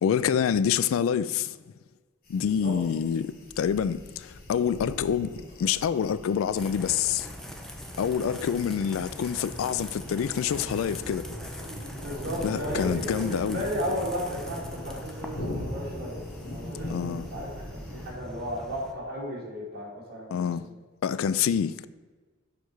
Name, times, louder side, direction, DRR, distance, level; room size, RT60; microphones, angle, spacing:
voice 1, 0.0-1.6 2.3-7.3 8.0-11.2 12.4-13.6 16.9-17.3 20.3-20.6 21.0-21.9, left 8 dB, 70° left, 0.3 m, -27 dB
sound 1, 2.3-18.1, left 1 dB, 45° left, 1.4 m, -40 dB
sound 2, 6.5-18.9, equal, ahead, 0.6 m, -42 dB
voice 2, 11.6-17.5 17.9-20.5, equal, 50° right, 2.4 m, -34 dB
6.6 x 5.3 x 4.6 m
head